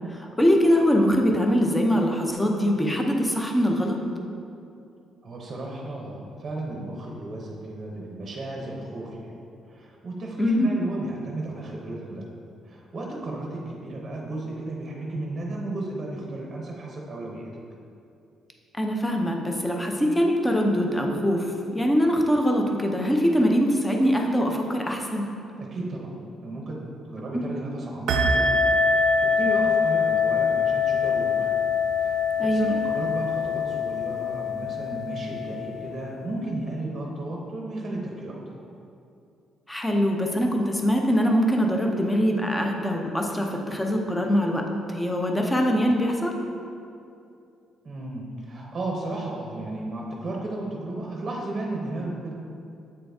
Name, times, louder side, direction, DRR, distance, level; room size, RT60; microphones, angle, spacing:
voice 1, 0.1-4.0 10.4-10.7 18.8-21.5 21.7-25.3 32.4-32.7 39.7-44.6 44.9-46.3, equal, 10° left, 1 dB, 0.5 m, -23 dB
voice 2, 5.2-12.3 12.6-17.5 25.6-26.1 26.4-26.8 27.0-28.6 28.9-31.5 32.0-38.5 47.8-52.3, right 2 dB, 30° right, -2 dB, 0.7 m, -34 dB
sound 1, 28.1-36.2, left 4 dB, 75° right, 0.5 m, -24 dB
7.7 x 3.9 x 3.4 m, 2.6 s
cardioid pair, 155°, 0 cm